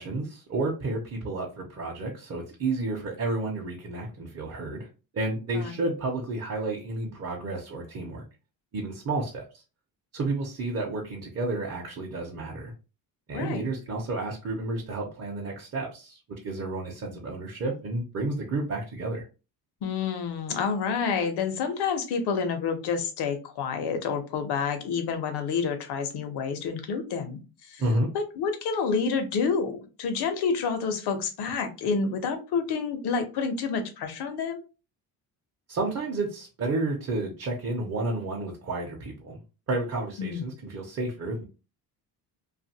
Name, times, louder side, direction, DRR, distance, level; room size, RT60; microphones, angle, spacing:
voice 1, 0.0-4.9 5.1-8.2 8.7-9.6 10.1-12.7 13.3-19.2 27.8-28.1 35.7-39.4 39.7-41.4, right 2 dB, 40° right, -2 dB, 0.7 m, -31 dB
voice 2, 5.5-5.9 13.3-13.6 19.8-27.4 27.7-27.8 28.1-34.6 40.2-40.4, left 5 dB, 80° left, 7 dB, 0.8 m, -29 dB
2.6 x 2.4 x 2.8 m, 0.32 s
cardioid pair, 120°, 39 cm